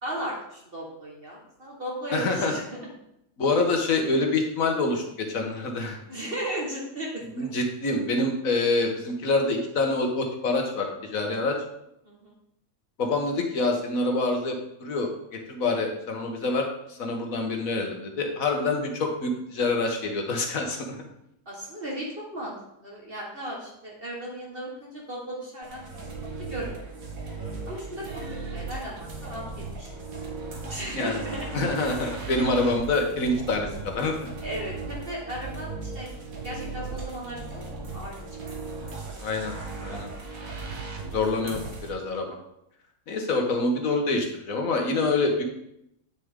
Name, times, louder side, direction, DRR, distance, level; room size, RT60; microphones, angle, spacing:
voice 1, 0.0-2.7 6.1-7.5 12.0-12.3 21.4-22.5 22.8-25.8 26.4-26.8 27.7-29.9 30.7-31.5 34.4-36.1 36.4-37.6 37.9-39.0, right 1 dB, 40° right, -3 dB, 1.7 m, -36 dB
voice 2, 2.1-2.5 3.4-6.0 7.4-11.6 13.0-15.1 15.5-21.0 30.9-31.2 31.5-34.3 39.2-39.5 39.8-40.1 41.1-42.4 43.1-45.4, left 2 dB, 65° left, 3 dB, 1.6 m, -26 dB
sound 1, 25.6-41.9, right 3 dB, 65° right, 1.9 m, -37 dB
9.3 x 6.6 x 3.6 m, 0.81 s
omnidirectional pair, 1.6 m